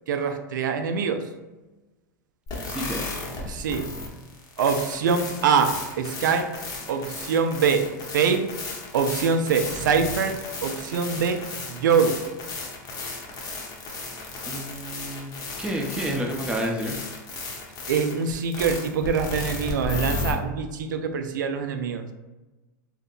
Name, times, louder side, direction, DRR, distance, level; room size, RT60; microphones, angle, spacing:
voice 1, 0.1-1.2 3.5-3.9 4.6-6.5 6.9-7.9 8.1-8.5 8.9-11.4 11.7-12.2 17.9-22.0, right 6 dB, 85° right, 7 dB, 0.4 m, -24 dB
sound 1, 2.5-20.3, left 3 dB, 40° left, 0.8 m, -34 dB
voice 2, 2.6-3.1 14.5-17.0, equal, 10° right, 0 dB, 0.6 m, -30 dB
2.8 x 2.2 x 3.8 m, 1.1 s
hypercardioid pair, 115°, 10 cm